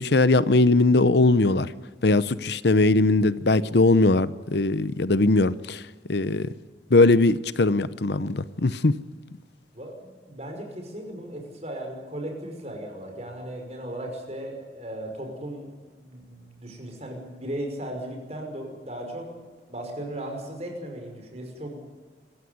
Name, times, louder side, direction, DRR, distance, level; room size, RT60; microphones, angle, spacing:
voice 1, 0.0-1.7 2.0-5.8 6.1-6.5 6.9-8.9, left 2 dB, 65° left, 16 dB, 0.8 m, -20 dB
voice 2, 9.7-15.7 15.9-19.3 19.7-21.8, right 1 dB, 35° right, 3 dB, 5.5 m, -36 dB
26.0 x 15.0 x 9.6 m, 1.4 s
head